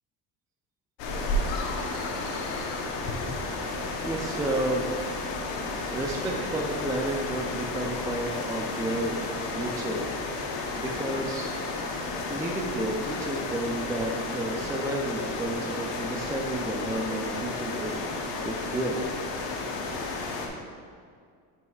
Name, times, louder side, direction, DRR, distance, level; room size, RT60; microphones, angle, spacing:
sound 1, 1.0-20.5, left 2 dB, 70° left, 1.0 m, -32 dB
sound 2, 1.5-3.9, left 4 dB, 90° left, 0.9 m, -41 dB
voice 1, 4.0-4.9 5.9-9.2 9.5-10.1 10.4-11.6 12.3-19.0, right 1 dB, 10° right, 0 dB, 0.3 m, -32 dB
9.2 x 5.5 x 2.4 m, 2.1 s
supercardioid pair, 105°, 45 cm